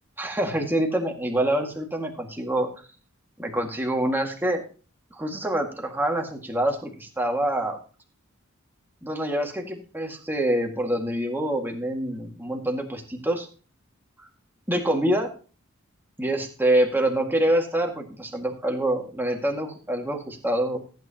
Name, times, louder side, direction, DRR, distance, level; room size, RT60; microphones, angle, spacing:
voice 1, 0.2-2.7 3.4-4.6 5.2-7.8 9.0-13.5 14.7-15.3 16.2-20.8, right 1 dB, 10° right, 2 dB, 1.9 m, -26 dB
15.0 x 9.2 x 2.9 m, 0.38 s
head